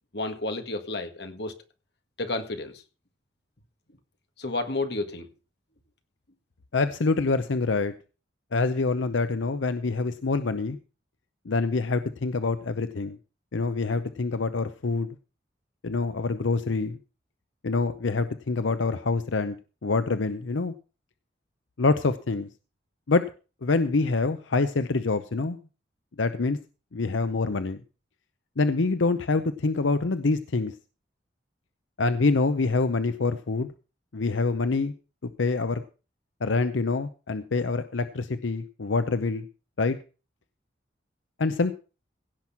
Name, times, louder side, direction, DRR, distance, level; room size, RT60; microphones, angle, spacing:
voice 1, 0.1-1.5 2.2-2.8 4.4-5.3, left 2 dB, 60° left, 6 dB, 1.7 m, -31 dB
voice 2, 6.7-7.9 8.5-10.8 11.5-13.2 13.5-15.1 15.8-17.0 17.6-19.5 19.8-20.7 21.8-22.5 23.1-23.2 23.6-25.6 26.2-26.6 26.9-27.8 28.6-30.7 32.0-33.7 34.1-34.9 35.4-35.8 36.4-39.5 39.8-40.0 41.4-41.7, left 3 dB, 90° left, 11 dB, 0.7 m, -26 dB
16.5 x 6.1 x 5.8 m, 0.34 s
head